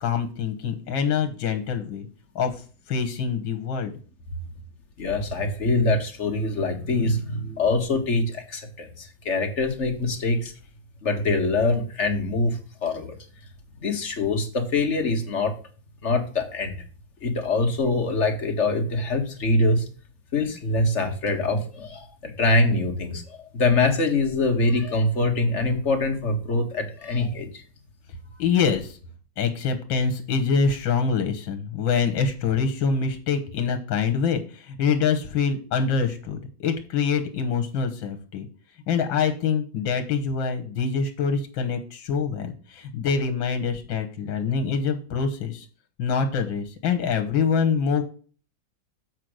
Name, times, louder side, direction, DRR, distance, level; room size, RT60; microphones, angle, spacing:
voice 1, 0.0-2.1 2.4-3.9 28.4-29.0 29.4-38.5 38.9-45.7 46.0-48.0, left 6 dB, 80° left, 7 dB, 1.9 m, -25 dB
voice 2, 5.0-10.5 11.0-13.1 13.8-15.5 16.0-16.8 17.2-19.8 20.3-27.6, left 2 dB, 40° left, 5 dB, 1.7 m, -24 dB
7.6 x 5.0 x 6.3 m, 0.38 s
omnidirectional pair, 2.1 m